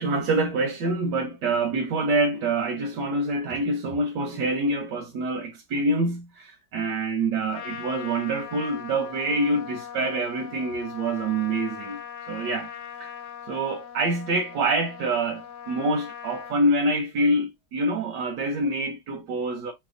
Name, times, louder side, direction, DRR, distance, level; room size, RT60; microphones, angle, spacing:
voice 1, 0.0-12.0 12.3-12.7 13.0-13.1 13.5-19.7, right 2 dB, 90° right, 1.4 m, -26 dB
Trumpet, 7.5-16.6, left 8 dB, 75° left, 0.6 m, -40 dB
3.4 x 2.1 x 3.6 m
omnidirectional pair, 1.8 m